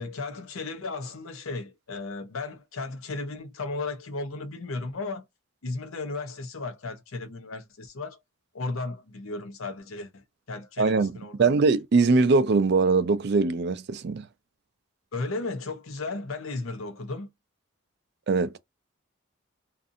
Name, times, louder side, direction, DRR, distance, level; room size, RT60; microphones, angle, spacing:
voice 1, 0.0-5.2 5.6-8.2 8.5-10.2 10.5-11.5 15.1-17.3, left 3 dB, 75° left, 0.7 m, -35 dB
voice 2, 10.8-11.1 11.4-14.2 18.3-18.6, right 4 dB, 50° right, 0.4 m, -22 dB
2.6 x 2.5 x 2.5 m
head